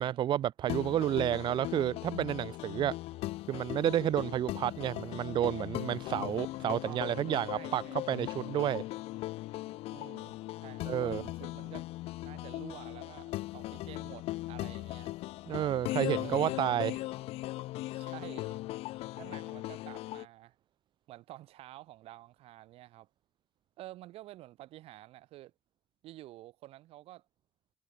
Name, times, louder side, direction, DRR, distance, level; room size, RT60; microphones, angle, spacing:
voice 1, 0.0-2.9 3.5-7.8 8.1-8.8 10.9-11.2 15.5-17.0, right 11 dB, 50° right, 0.6 m, -30 dB
sound 1, 0.7-20.3, left 18 dB, 80° left, 0.6 m, -39 dB
voice 2, 6.8-8.2 9.9-11.9 12.2-15.1 16.1-16.6 17.9-18.6 19.2-20.6 21.1-23.1 23.8-25.5 26.0-27.2, right 15 dB, 75° right, 3.8 m, -50 dB
cardioid pair, 145°, 10 cm